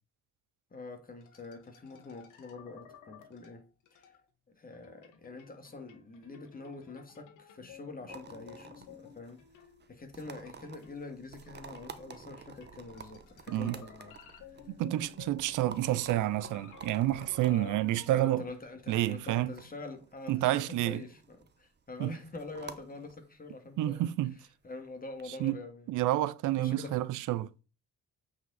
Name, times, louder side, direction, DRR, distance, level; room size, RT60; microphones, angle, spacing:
voice 1, 0.7-3.7 3.9-4.2 4.5-9.4 9.9-14.6 17.4-17.8 18.1-24.1 24.6-25.9 26.6-27.0, left 3 dB, 30° left, 2.2 m, -45 dB
sound 1, 1.2-4.2 4.7-10.0 10.4-18.4, left 8 dB, 85° left, 1.7 m, -54 dB
sound 2, 8.1-25.2, right 5 dB, 35° right, 1.1 m, -52 dB
voice 2, 13.5-13.8 14.7-18.4 18.9-19.5 20.3-21.0 22.0-22.1 23.8-24.3 25.4-25.6 25.9-27.5, right 15 dB, 80° right, 0.6 m, -29 dB
8.3 x 4.9 x 4.1 m
cardioid pair, 90°, 30 cm